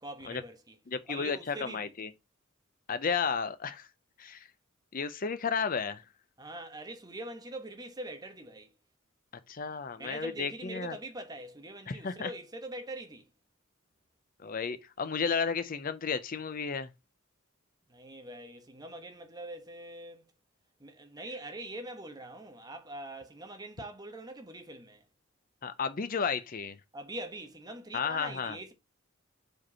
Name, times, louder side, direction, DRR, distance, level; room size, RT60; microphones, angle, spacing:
voice 1, 0.0-0.8 1.1-2.1 6.4-8.7 10.0-13.2 17.9-20.2 20.8-25.0 26.9-28.7, right 1 dB, 20° right, 1.1 m, -43 dB
voice 2, 0.9-2.1 2.9-3.9 4.2-4.5 4.9-6.0 9.5-11.0 11.9-12.3 14.4-16.9 25.6-26.8 27.9-28.6, left 5 dB, 40° left, 0.5 m, -33 dB
5.0 x 4.6 x 5.4 m
head